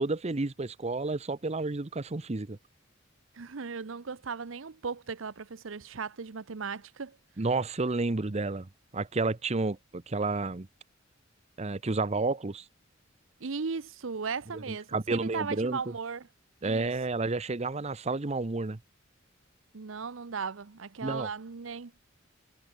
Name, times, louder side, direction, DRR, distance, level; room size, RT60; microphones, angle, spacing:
voice 1, 0.0-2.6 7.4-10.7 11.6-12.6 14.7-15.8 16.6-18.8 21.0-21.3, right 3 dB, 35° right, 0.8 m, -31 dB
voice 2, 3.3-7.2 13.4-16.3 16.6-16.9 19.7-21.9, right 5 dB, 80° right, 0.8 m, -37 dB
head